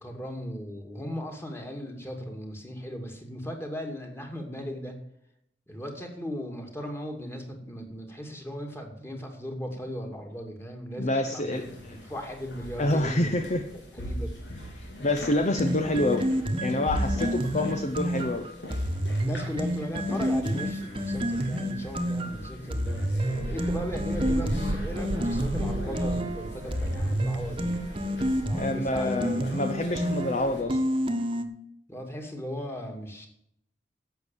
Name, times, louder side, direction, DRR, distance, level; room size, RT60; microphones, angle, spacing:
voice 1, 0.0-5.0 5.7-13.4 13.7-14.4 17.1-17.4 19.2-27.8 28.5-29.5 29.9-30.0 31.9-33.3, equal, 15° left, 3 dB, 2.4 m, -37 dB
voice 2, 11.0-12.0 12.8-13.6 14.8-16.3 16.6-18.5 28.5-30.8, left 1 dB, 40° left, 7 dB, 0.8 m, -27 dB
sound 1, 11.5-30.6, equal, 85° left, 4.0 m, -40 dB
sound 2, 15.6-31.4, equal, 30° right, 1.2 m, -29 dB
Wind, 23.2-29.1, right 2 dB, 80° right, 0.8 m, -35 dB
11.5 x 8.0 x 7.3 m, 0.73 s
head